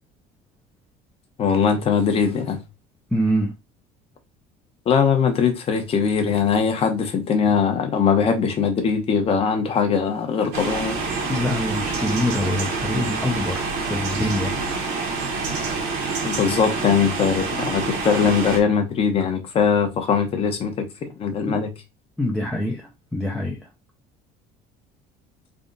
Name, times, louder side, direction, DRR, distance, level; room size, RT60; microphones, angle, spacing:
voice 1, 1.4-2.6 4.9-11.0 16.2-21.7, left 6 dB, 35° left, 1.0 m, -21 dB
voice 2, 3.1-3.5 11.3-14.6 21.5-21.6 22.2-23.7, left 1 dB, 5° left, 0.6 m, -25 dB
sound 1, 10.5-18.6, right 4 dB, 70° right, 1.3 m, -27 dB
3.6 x 2.4 x 3.9 m
cardioid pair, 150°, 17 cm